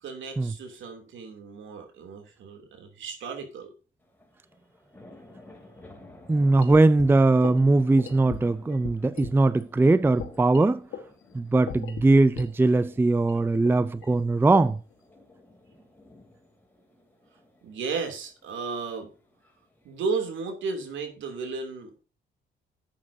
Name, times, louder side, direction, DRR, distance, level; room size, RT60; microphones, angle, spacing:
voice 1, 0.0-3.7 17.6-19.1 19.8-22.0, right 4 dB, 75° right, 3.0 m, -34 dB
sound 1, 4.0-20.3, left 1 dB, 10° left, 3.2 m, -53 dB
voice 2, 6.3-10.8 11.3-14.8, right 2 dB, 10° right, 0.4 m, -20 dB
sound 2, 6.6-9.3 9.6-9.7 10.2-12.5 12.8-12.9 13.3-14.9, left 8 dB, 85° left, 1.8 m, -40 dB
12.0 x 8.7 x 2.7 m
cardioid pair, 90°, 20 cm